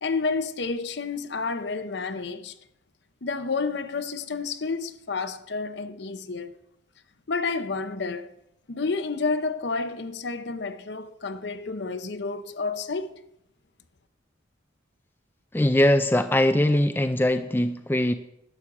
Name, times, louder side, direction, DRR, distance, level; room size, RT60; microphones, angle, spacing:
voice 1, 0.0-2.6 3.2-6.5 7.3-8.3 8.7-13.2, left 4 dB, 55° left, 0.7 m, -30 dB
voice 2, 15.5-18.1, left 1 dB, 10° left, 0.4 m, -21 dB
11.5 x 6.3 x 7.2 m
head